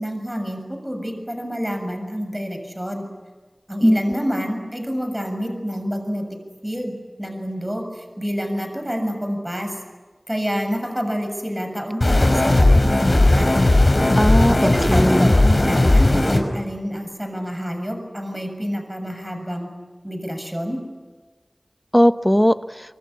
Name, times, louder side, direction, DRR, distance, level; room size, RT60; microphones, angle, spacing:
voice 1, 0.0-3.1 3.7-9.7 10.3-13.6 14.6-19.7 20.0-20.8, equal, 10° right, 5 dB, 7.2 m, -28 dB
sound 1, 12.0-16.4, left 2 dB, 50° left, 5.0 m, -16 dB
voice 2, 14.2-15.3 21.9-22.6, equal, 5° left, 10 dB, 1.2 m, -17 dB
25.0 x 24.0 x 9.8 m, 1.3 s
wide cardioid pair, 55°, 0 cm